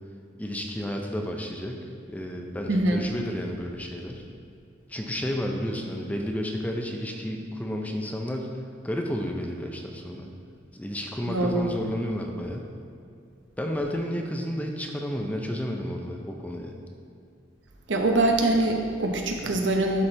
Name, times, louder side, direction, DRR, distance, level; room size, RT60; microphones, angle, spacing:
voice 1, 0.4-4.2 4.9-8.5 8.8-10.3 10.7-12.7 13.6-16.7, equal, 10° left, 2 dB, 0.5 m, -31 dB
voice 2, 2.7-3.0 11.2-11.7 17.9-20.1, right 2 dB, 85° right, 2 dB, 0.9 m, -23 dB
12.0 x 4.2 x 3.3 m, 2.4 s
head